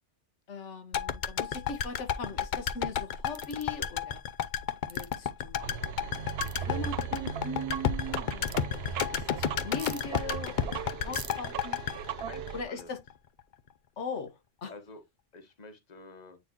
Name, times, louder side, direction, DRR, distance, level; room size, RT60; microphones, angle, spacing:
voice 1, 0.5-4.2 4.9-11.8 12.5-13.0 14.0-14.7, left 2 dB, 85° left, 1.5 m, -40 dB
sound 1, 0.9-13.1 13.4-13.5, left 8 dB, 50° left, 0.6 m, -32 dB
sound 2, 3.3-3.6 4.9-5.2 6.4-6.6 8.5-8.6 9.8-10.0 11.1-11.4, right 4 dB, 25° right, 0.5 m, -43 dB
sound 3, 5.6-12.6, right 8 dB, 65° right, 0.8 m, -38 dB
voice 2, 12.3-12.9 14.7-15.0 15.3-16.4, left 3 dB, 35° left, 1.4 m, -49 dB
9.1 x 3.9 x 2.9 m
omnidirectional pair, 1.2 m